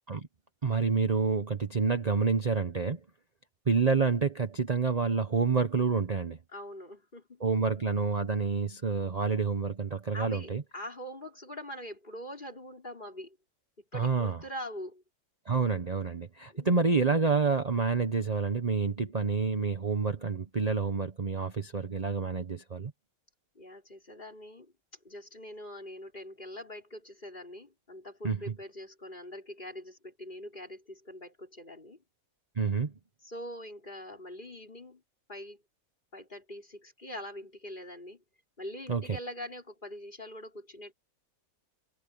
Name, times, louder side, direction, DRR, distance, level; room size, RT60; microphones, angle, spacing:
voice 1, 0.6-3.0 3.7-6.4 7.4-10.6 13.9-14.4 15.5-22.9 28.2-28.4 32.6-32.9 38.9-39.0, right 4 dB, 30° right, 1.0 m, -28 dB
voice 2, 6.5-7.4 10.1-13.4 13.9-15.0 16.5-17.2 23.6-24.7 25.0-32.0 33.2-35.0 35.3-35.6 36.1-38.2 38.6-40.9, equal, 35° left, 5.5 m, -43 dB
omnidirectional pair, 1.4 m